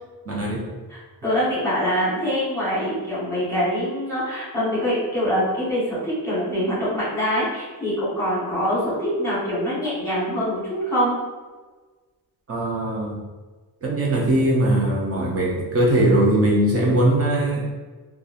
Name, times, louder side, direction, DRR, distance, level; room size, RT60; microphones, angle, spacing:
voice 1, 0.3-0.6 12.5-13.2 13.8-17.6, right 1 dB, 40° right, -3 dB, 0.6 m, -20 dB
voice 2, 0.9-11.2 16.7-17.0, equal, 10° left, -10 dB, 1.0 m, -24 dB
2.9 x 2.3 x 2.4 m, 1.3 s
wide cardioid pair, 175°, 38 cm